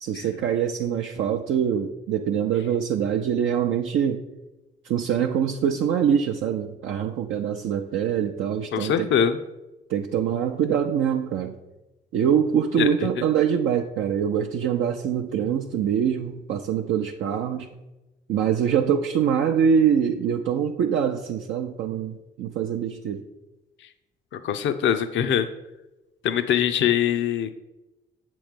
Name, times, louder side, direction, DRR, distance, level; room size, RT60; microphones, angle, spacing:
voice 1, 0.0-4.2 4.8-9.1 9.9-11.6 12.1-17.7 18.3-23.2, right 8 dB, 75° right, 3 dB, 0.5 m, -24 dB
voice 2, 8.7-9.4 12.8-12.9 24.4-25.5 26.2-27.5, left 9 dB, 65° left, 9 dB, 0.5 m, -22 dB
7.1 x 3.1 x 5.1 m, 1.0 s
supercardioid pair, 55°, 21 cm